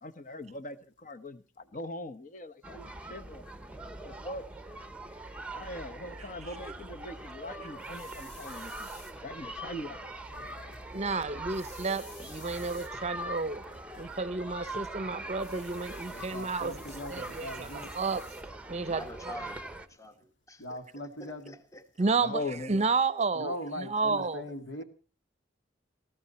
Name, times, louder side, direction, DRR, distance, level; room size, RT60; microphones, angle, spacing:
voice 1, 0.0-3.4 4.0-4.4 5.5-8.9 9.2-10.0 18.7-19.0 22.1-22.9, left 1 dB, 45° left, 1.1 m, -41 dB
sound 1, 2.6-19.9, right 1 dB, 5° right, 0.8 m, -42 dB
sound 2, 7.8-9.1 11.5-12.9 15.4-18.4, left 4 dB, 65° left, 3.6 m, -53 dB
voice 2, 10.4-10.8 16.1-17.9 20.6-21.5 23.3-24.8, left 1 dB, 80° left, 2.3 m, -41 dB
voice 3, 10.9-13.7 14.0-18.2 18.7-19.0 22.0-22.4 22.7-24.4, right 4 dB, 35° right, 0.7 m, -31 dB
voice 4, 18.8-22.0 24.5-24.6, equal, 15° left, 1.2 m, -47 dB
19.5 x 14.5 x 4.2 m
head